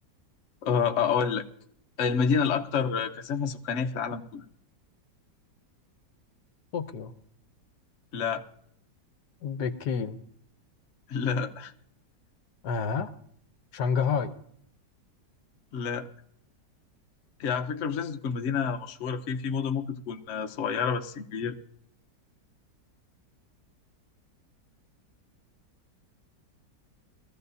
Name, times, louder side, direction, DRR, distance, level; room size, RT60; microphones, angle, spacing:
voice 1, 0.6-1.5 2.0-4.4 8.1-8.4 11.1-11.7 15.7-16.1 17.4-21.6, left 6 dB, 50° left, 5 dB, 1.0 m, -28 dB
voice 2, 6.7-7.1 9.4-10.2 12.6-13.1 13.7-14.3, left 6 dB, 70° left, 9 dB, 1.3 m, -29 dB
22.0 x 14.5 x 2.7 m, 0.68 s
omnidirectional pair, 1.9 m